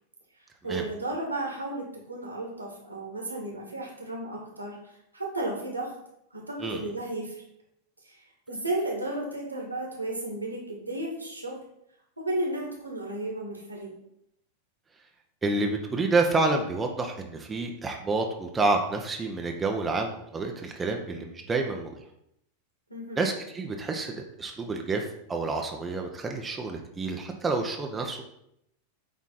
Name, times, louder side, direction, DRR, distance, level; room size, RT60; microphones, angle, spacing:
voice 1, 0.6-5.9 6.3-7.4 8.0-11.5 12.2-13.9 22.9-23.2, right 1 dB, 85° right, 0 dB, 1.8 m, -34 dB
voice 2, 15.4-22.0 23.2-28.2, right 3 dB, 15° right, 2 dB, 0.8 m, -29 dB
8.2 x 3.6 x 4.1 m, 0.77 s
figure-of-eight pair, 90°, 0 cm